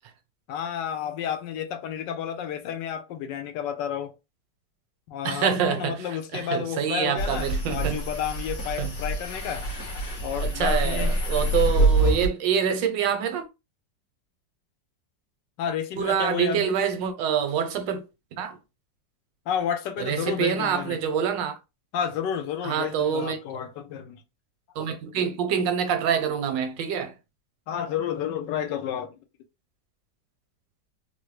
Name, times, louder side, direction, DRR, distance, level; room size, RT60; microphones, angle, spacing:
voice 1, 0.5-4.1 5.1-9.7 10.2-11.1 11.8-12.2 15.6-16.8 19.5-21.0 21.9-24.2 27.7-29.2, left 9 dB, 80° left, 1.3 m, -31 dB
voice 2, 5.2-6.0 6.3-8.0 8.8-8.9 10.4-13.4 16.0-18.0 18.4-18.6 20.0-21.5 22.6-23.4 24.8-27.1, right 8 dB, 85° right, 1.4 m, -26 dB
sound 1, 7.2-12.3, right 1 dB, 45° left, 1.3 m, -25 dB
3.8 x 2.0 x 3.1 m
omnidirectional pair, 1.9 m